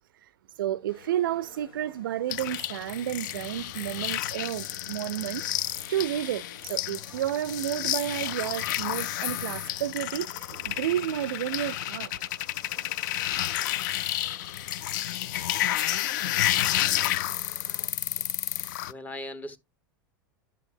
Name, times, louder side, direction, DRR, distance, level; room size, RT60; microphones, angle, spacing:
voice 1, 0.6-5.4 5.9-12.1, right 12 dB, 75° right, 0.4 m, -31 dB
sound 1, 0.9-17.9, left 2 dB, 85° left, 1.8 m, -52 dB
sound 2, 2.3-18.9, left 13 dB, 65° left, 0.4 m, -31 dB
voice 2, 18.6-19.6, left 1 dB, 15° left, 0.8 m, -39 dB
10.5 x 5.7 x 2.6 m
hypercardioid pair, 95°, 11 cm